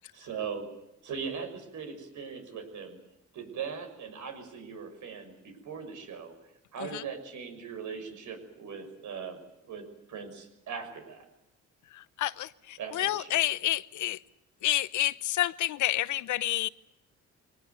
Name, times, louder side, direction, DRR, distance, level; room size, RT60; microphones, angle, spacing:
voice 1, 0.1-0.7 1.0-3.0 3.3-6.3 6.7-9.4 9.6-11.2 12.8-13.3, right 6 dB, 75° right, 7 dB, 6.2 m, -40 dB
voice 2, 11.9-14.2 14.6-16.7, left 14 dB, 75° left, 17 dB, 0.9 m, -29 dB
23.0 x 19.5 x 9.5 m, 0.88 s
cardioid pair, 90°, 30 cm